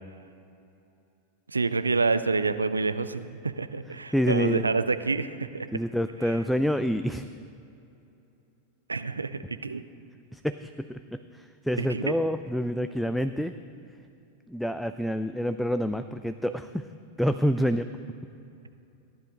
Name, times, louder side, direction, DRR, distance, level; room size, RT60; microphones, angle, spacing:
voice 1, 1.5-5.7 6.2-6.3 8.9-9.8 11.8-12.1, right 4 dB, 80° right, 12 dB, 0.5 m, -28 dB
voice 2, 4.1-4.6 5.7-7.3 10.3-13.5 14.5-16.9 17.2-17.9, equal, ahead, 10 dB, 0.3 m, -27 dB
15.0 x 10.5 x 3.8 m, 2.7 s
figure-of-eight pair, 90°, 0 cm